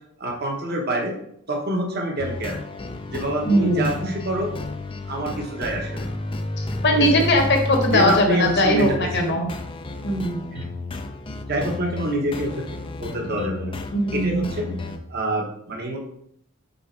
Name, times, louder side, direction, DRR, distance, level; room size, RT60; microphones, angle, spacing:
voice 1, 0.2-1.1 1.5-2.6 3.1-4.5 5.1-6.0 6.9-7.2 7.9-9.4 10.5-10.7 11.5-12.6 13.0-13.8 14.1-14.7 15.1-16.0, right 1 dB, 45° right, 1 dB, 1.1 m, -26 dB
sound 1, 2.2-15.0, left 2 dB, 25° left, 0.4 m, -32 dB
voice 2, 3.4-4.1 6.6-9.5 10.0-10.4 13.9-14.5, left 1 dB, 50° left, 3 dB, 1.2 m, -20 dB
5.5 x 4.0 x 4.5 m, 0.72 s
head